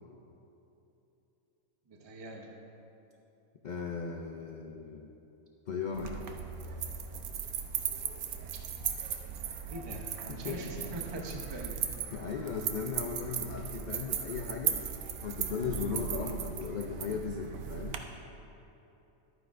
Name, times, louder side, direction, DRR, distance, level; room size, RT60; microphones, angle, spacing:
voice 1, 1.9-2.5 9.7-11.8 16.1-16.4, right 1 dB, 25° right, 1 dB, 0.6 m, -43 dB
voice 2, 3.6-5.1 5.7-6.3 9.9-10.0 10.3-10.6 12.1-18.0, left 5 dB, 90° left, 2 dB, 0.4 m, -37 dB
sound 1, 5.9-18.0, right 8 dB, 90° right, 1.1 m, -37 dB
12.0 x 9.4 x 2.6 m, 2.9 s
omnidirectional pair, 1.5 m